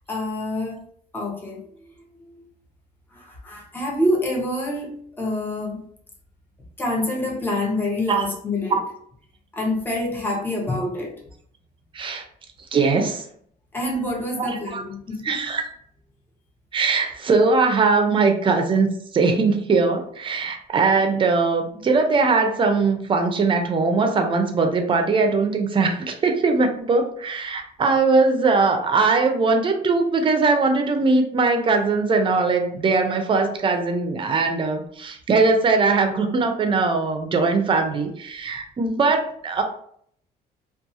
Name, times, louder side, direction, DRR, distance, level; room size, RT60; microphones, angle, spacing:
voice 1, 0.1-0.8 1.1-2.4 3.1-5.8 6.8-8.8 9.5-11.2 13.7-15.4, left 1 dB, 10° left, -2 dB, 0.6 m, -27 dB
voice 2, 12.7-13.2 14.4-14.8 15.2-15.6 16.7-39.6, right 4 dB, 30° right, 5 dB, 0.5 m, -20 dB
2.6 x 2.3 x 2.5 m, 0.64 s
cardioid pair, 110°, 17 cm